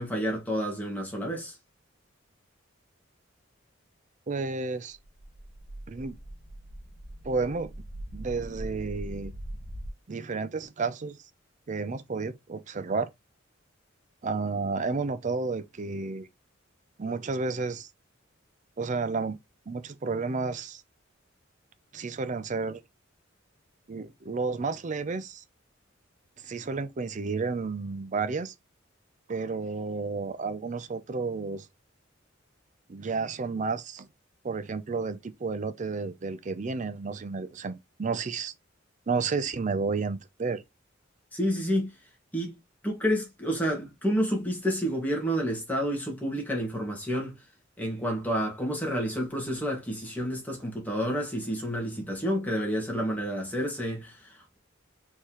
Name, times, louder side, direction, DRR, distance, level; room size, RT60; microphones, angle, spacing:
voice 1, 0.0-1.6 41.3-41.9 42.3-42.5 42.8-47.4 47.8-54.6, equal, 10° left, 1.8 m, -29 dB
voice 2, 4.3-5.0 5.9-6.2 7.2-7.7 8.1-9.3 10.1-11.2 11.7-13.1 14.2-16.3 17.0-17.9 18.8-19.4 19.7-20.8 21.9-22.8 23.9-25.4 26.4-28.5 29.3-31.7 32.9-34.1 34.4-38.5 39.1-40.6, right 4 dB, 40° right, 0.5 m, -31 dB
sound 1, 5.0-9.9, right 1 dB, 30° left, 1.5 m, -41 dB
4.5 x 3.7 x 3.0 m
head